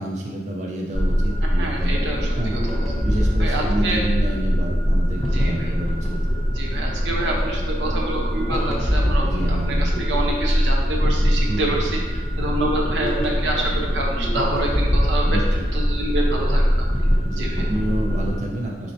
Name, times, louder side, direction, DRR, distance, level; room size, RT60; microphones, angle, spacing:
voice 1, 0.0-2.0 2.3-2.6 3.0-6.2 9.2-9.9 11.5-11.7 15.3-15.7 17.2-18.9, right 1 dB, 40° right, -2 dB, 0.5 m, -29 dB
sound 1, 0.9-18.4, equal, ahead, 0.8 m, -22 dB
voice 2, 1.4-2.6 3.4-4.0 5.3-5.7 6.5-12.0 12.4-16.9 17.4-17.6, right 1 dB, 80° right, -1 dB, 0.8 m, -27 dB
4.4 x 4.1 x 2.6 m, 1.3 s
head